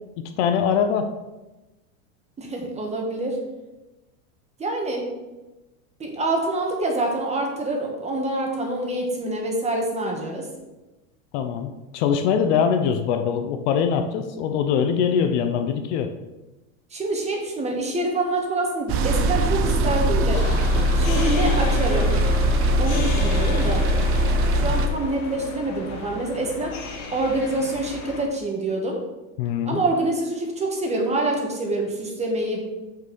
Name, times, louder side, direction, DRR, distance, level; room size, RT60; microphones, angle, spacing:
voice 1, 0.4-1.1 11.3-16.1 29.4-29.8, left 7 dB, 55° left, 8 dB, 0.9 m, -22 dB
voice 2, 2.4-3.4 4.6-5.0 6.0-10.5 16.9-20.4 20.9-22.1 22.8-23.8 24.5-26.7 27.1-29.0 29.6-32.6, right 2 dB, 15° right, 1 dB, 1.5 m, -26 dB
sound 1, 18.9-24.9, right 1 dB, 30° right, 0.7 m, -21 dB
sound 2, 20.3-28.3, left 3 dB, 80° left, 1.8 m, -33 dB
6.7 x 6.1 x 5.3 m, 1.1 s
supercardioid pair, 150°, 42 cm